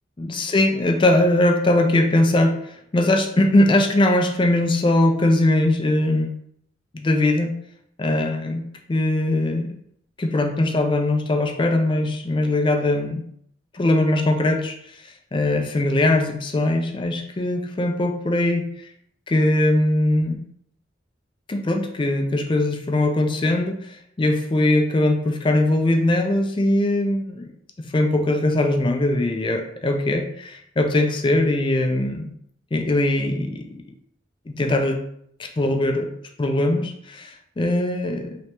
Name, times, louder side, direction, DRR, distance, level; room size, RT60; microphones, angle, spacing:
voice 1, 0.2-2.5 2.9-6.3 6.9-7.5 8.0-8.6 8.9-9.7 10.2-13.2 13.7-14.7 15.3-18.6 19.3-20.4 21.5-27.5 27.8-32.3 32.7-33.8 34.5-35.0 35.4-36.1 36.4-38.4, left 1 dB, 25° left, 4 dB, 0.4 m, -21 dB
3.3 x 2.9 x 2.9 m, 0.67 s
head